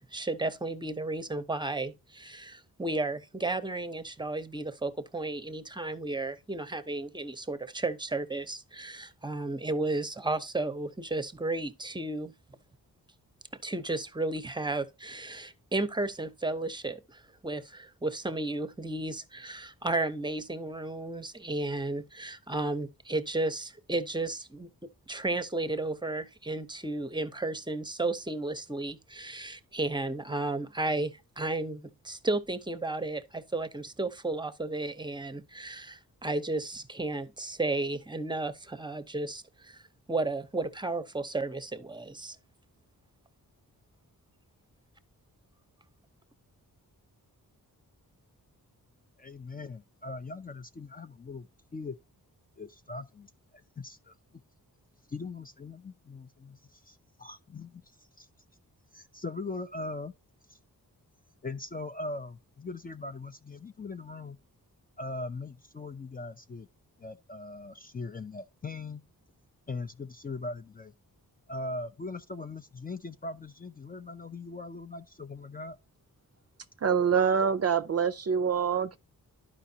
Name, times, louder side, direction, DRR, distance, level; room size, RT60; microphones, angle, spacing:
voice 1, 0.1-12.3 13.6-39.8 40.1-42.4, right 2 dB, 15° right, 0.7 m, -33 dB
voice 2, 49.2-52.0 52.6-54.2 55.1-58.3 58.9-60.1 60.5-60.6 61.4-64.4 65.0-66.7 67.0-69.0 69.7-70.9 71.5-75.8, left 3 dB, 25° left, 0.4 m, -40 dB
voice 3, 76.8-79.0, right 7 dB, 45° right, 0.5 m, -25 dB
11.5 x 5.0 x 2.7 m
cardioid pair, 65°, 36 cm